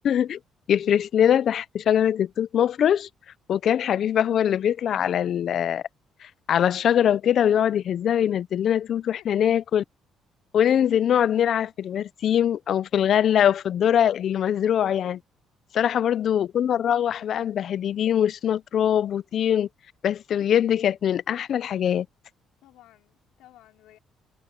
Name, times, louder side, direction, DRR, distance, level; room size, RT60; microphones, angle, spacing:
voice 1, 0.0-0.4 0.7-3.1 3.5-5.8 6.2-9.8 10.5-15.2 15.7-19.7 20.0-22.1, left 9 dB, 60° left, 0.5 m, -22 dB
voice 2, 9.2-9.6 22.6-24.0, left 14 dB, 90° left, 4.6 m, -55 dB
cardioid pair, 100°, 0 cm